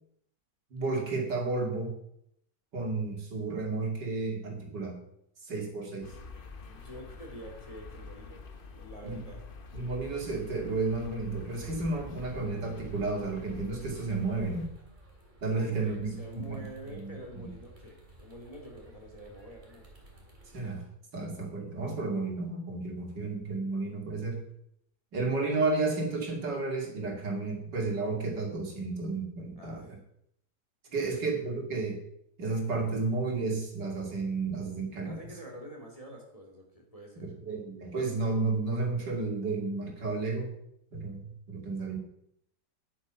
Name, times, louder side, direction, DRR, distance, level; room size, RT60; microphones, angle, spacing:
voice 1, 0.7-2.0 2.7-5.0 5.4-6.1 9.0-9.2 9.7-14.7 15.4-16.6 17.0-17.5 20.5-20.8 21.1-24.4 25.1-29.9 30.9-32.0 32.4-35.2 37.2-40.5 40.9-42.0, right 3 dB, 75° right, 1 dB, 3.1 m, -32 dB
sound 1, 6.0-14.7, left 4 dB, 40° left, 0.9 m, -47 dB
voice 2, 6.7-8.4 8.7-9.4 15.6-19.9 23.0-23.1 29.6-29.9 30.9-31.1 35.0-37.3, equal, 20° left, 0 dB, 2.6 m, -47 dB
sound 2, 10.9-20.7, right 1 dB, 25° right, 2.8 m, -53 dB
11.0 x 8.4 x 5.7 m, 0.74 s
omnidirectional pair, 1.9 m